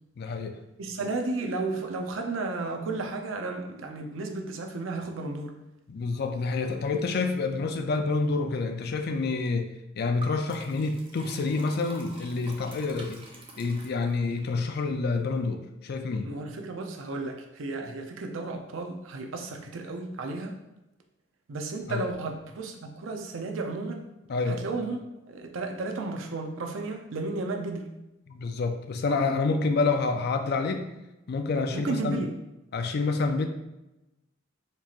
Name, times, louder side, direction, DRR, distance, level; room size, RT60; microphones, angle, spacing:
voice 1, 0.2-0.6 5.9-13.2 13.6-16.3 21.9-22.1 24.3-24.6 28.3-30.9 31.3-32.2 32.7-33.5, left 3 dB, 55° left, 6 dB, 0.4 m, -28 dB
voice 2, 0.8-5.5 16.2-20.6 21.5-24.1 24.5-25.0 25.3-27.9 31.7-32.3, right 3 dB, 85° right, 3 dB, 0.5 m, -33 dB
Liquid, 10.2-14.4, right 2 dB, 25° right, 0.5 m, -47 dB
4.5 x 2.9 x 2.4 m, 0.94 s
head